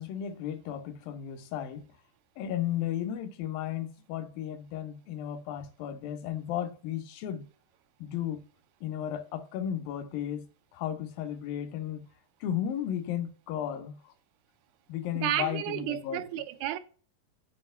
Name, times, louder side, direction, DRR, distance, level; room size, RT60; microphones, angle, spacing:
voice 1, 0.0-1.9 2.4-7.5 8.0-8.5 8.8-10.5 10.7-12.1 12.4-14.1 14.9-16.2, left 10 dB, 80° left, 2.1 m, -34 dB
voice 2, 15.2-16.8, right 13 dB, 85° right, 2.7 m, -31 dB
9.5 x 5.0 x 5.5 m
omnidirectional pair, 4.7 m